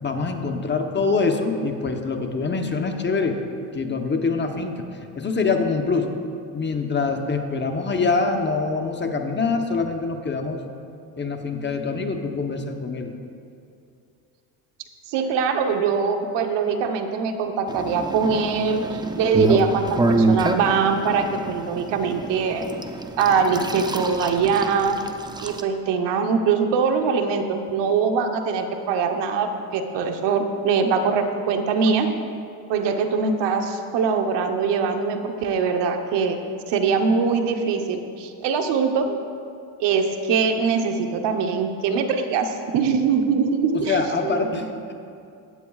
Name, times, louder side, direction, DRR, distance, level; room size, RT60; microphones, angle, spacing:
voice 1, 0.0-3.4 3.7-4.8 5.1-6.1 6.5-10.6 11.2-13.1 43.7-44.9, left 4 dB, 25° left, 4 dB, 0.9 m, -24 dB
voice 2, 15.1-22.6 23.2-25.0 25.4-32.1 32.7-36.4 36.7-39.2 39.8-44.4, right 5 dB, 70° right, 6 dB, 1.0 m, -22 dB
sound 1, 17.7-25.6, right 2 dB, 10° right, 0.4 m, -27 dB
15.5 x 9.5 x 2.4 m, 2.5 s
cardioid pair, 95°, 44 cm